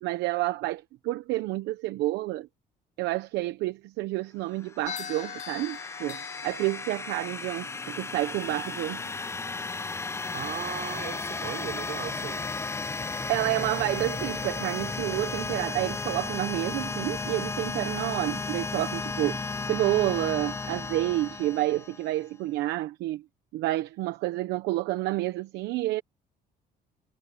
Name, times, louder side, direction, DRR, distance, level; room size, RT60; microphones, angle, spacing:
voice 1, 0.0-2.5 3.0-9.0 13.3-19.4 19.7-23.2 23.5-26.0, right 17 dB, 85° right, 1.0 m, -29 dB
sound 1, 4.6-22.2, left 4 dB, 15° left, 0.5 m, -34 dB
sound 2, 4.8-13.2, left 9 dB, 50° left, 3.9 m, -45 dB
voice 2, 10.3-12.5, right 12 dB, 65° right, 4.3 m, -37 dB
cardioid pair, 110°, 17 cm